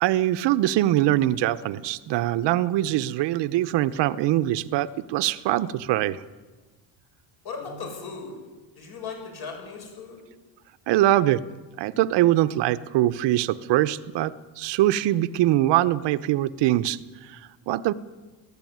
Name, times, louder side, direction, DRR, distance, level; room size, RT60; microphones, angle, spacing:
voice 1, 0.0-6.2 10.9-11.4 11.8-17.0 17.7-17.9, right 14 dB, 70° right, 14 dB, 0.9 m, -23 dB
voice 2, 7.4-8.3 8.8-10.2, left 5 dB, 55° left, 2 dB, 7.4 m, -37 dB
20.0 x 15.5 x 9.3 m, 1.3 s
cardioid pair, 160°, 44 cm